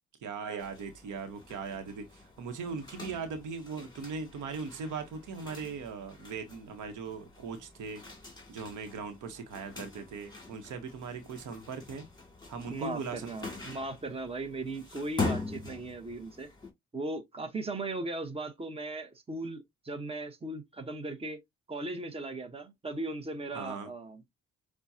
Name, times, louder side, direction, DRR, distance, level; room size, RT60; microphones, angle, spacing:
voice 1, 0.2-8.0 8.5-12.1 12.5-13.6 23.5-23.9, right 5 dB, 80° right, 1.1 m, -39 dB
sound 1, 0.6-16.7, left 3 dB, 15° left, 2.2 m, -43 dB
voice 2, 12.7-16.5 16.9-21.4 21.7-24.3, right 2 dB, 20° right, 1.1 m, -38 dB
7.0 x 2.4 x 2.8 m
cardioid pair, 90°, 30 cm